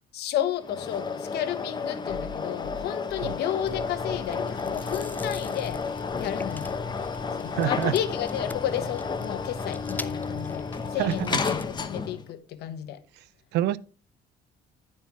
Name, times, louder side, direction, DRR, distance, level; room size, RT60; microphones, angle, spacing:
voice 1, 0.1-6.7 7.3-10.7 10.9-13.0, left 11 dB, 75° left, 1.0 m, -32 dB
sound 1, 0.6-12.3, left 5 dB, 25° left, 0.9 m, -32 dB
sound 2, 1.9-7.4 7.6-8.3, left 3 dB, 10° right, 1.6 m, -47 dB
Chewing mastication, 3.7-11.8, left 2 dB, 10° left, 0.4 m, -40 dB
voice 2, 7.5-7.9 11.0-11.4 13.5-13.8, right 13 dB, 80° right, 0.5 m, -26 dB
10.5 x 4.4 x 4.6 m
cardioid pair, 110°, 17 cm